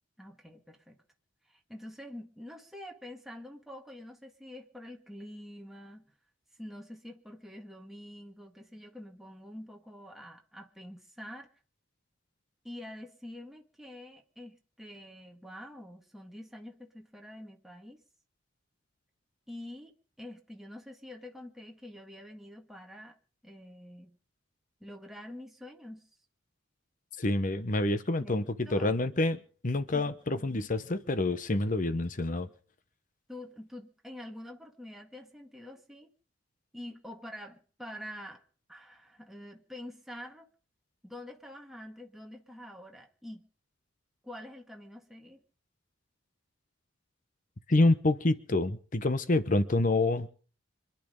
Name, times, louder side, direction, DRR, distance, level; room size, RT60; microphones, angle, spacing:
voice 1, 0.2-1.0 1.5-6.1 6.6-11.5 12.6-18.0 19.5-23.2 23.4-24.2 24.8-26.0 28.2-29.0 33.3-36.1 36.7-38.4 38.7-40.5 41.0-43.5 44.2-45.4, left 1 dB, ahead, 1.9 m, -46 dB
voice 2, 27.2-29.4 29.6-32.5 47.7-50.3, left 2 dB, 40° left, 1.0 m, -27 dB
26.0 x 10.5 x 5.2 m
head